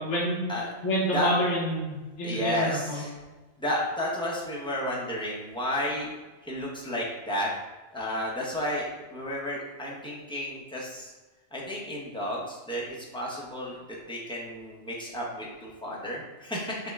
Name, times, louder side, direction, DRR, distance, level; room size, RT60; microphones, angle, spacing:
voice 1, 0.0-0.4 0.8-3.0, equal, 60° left, -7 dB, 1.3 m, -28 dB
voice 2, 2.2-3.1 3.6-6.1 6.4-7.5 7.9-11.1 11.5-13.8 14.1-16.8, equal, 5° left, -5 dB, 0.6 m, -32 dB
6.1 x 2.2 x 3.5 m, 1.2 s
omnidirectional pair, 1.4 m